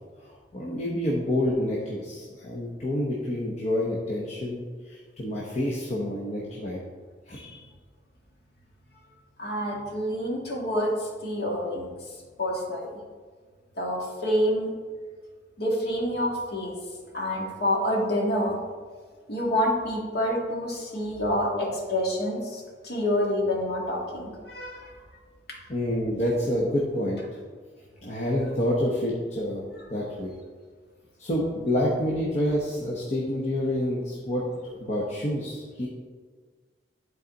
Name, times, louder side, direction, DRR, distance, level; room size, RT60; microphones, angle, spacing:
voice 1, 0.2-6.8 7.3-7.4 25.7-27.2 28.0-29.6 29.9-30.3 31.2-35.9, left 1 dB, 40° left, -4 dB, 0.9 m, -28 dB
voice 2, 9.4-11.9 12.4-13.0 13.8-14.7 15.6-16.7 17.1-18.6 19.3-24.9 25.5-25.6, equal, 60° left, -2 dB, 1.7 m, -27 dB
10.5 x 4.1 x 4.0 m, 1.5 s
head